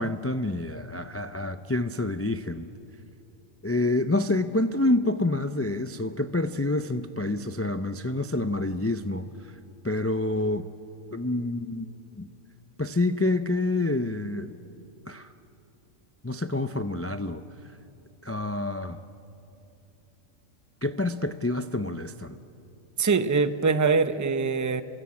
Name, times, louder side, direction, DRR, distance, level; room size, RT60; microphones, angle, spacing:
voice 1, 0.0-2.7 3.6-9.6 9.8-10.7 11.1-11.9 12.1-12.3 12.8-14.5 15.1-15.3 16.2-17.4 18.2-19.0 20.8-22.4, left 2 dB, 20° left, 10 dB, 0.3 m, -27 dB
voice 2, 23.0-24.8, right 4 dB, 20° right, 11 dB, 0.6 m, -23 dB
27.5 x 23.5 x 8.6 m, 2.7 s
omnidirectional pair, 1.4 m